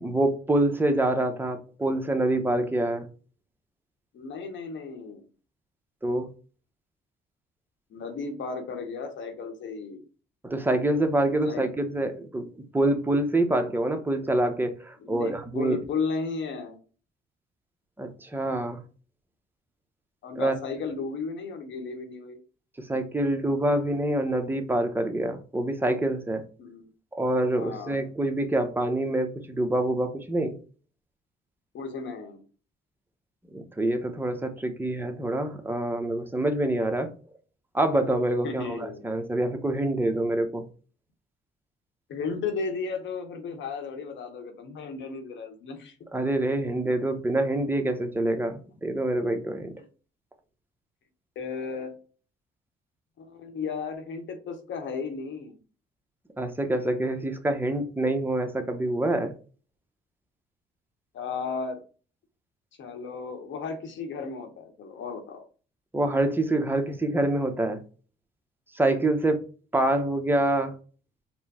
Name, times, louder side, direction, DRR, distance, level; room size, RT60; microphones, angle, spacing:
voice 1, 0.0-3.1 6.0-6.3 10.4-12.5 12.7-15.8 18.0-18.8 20.4-20.5 22.9-26.4 27.1-30.6 33.5-37.1 37.7-40.7 46.1-49.7 56.4-59.3 65.9-67.8 68.7-69.4 69.7-70.7, right 1 dB, 10° right, 5 dB, 0.8 m, -26 dB
voice 2, 4.1-5.3 7.9-10.0 11.4-11.7 15.0-16.8 20.2-22.4 26.6-26.9 27.6-28.0 31.7-32.4 38.4-39.0 42.1-45.9 51.3-51.9 53.2-55.6 61.1-61.8 62.8-65.4, left 5 dB, 70° left, 6 dB, 1.1 m, -34 dB
4.5 x 2.2 x 4.1 m, 0.37 s
cardioid pair, 90°, 20 cm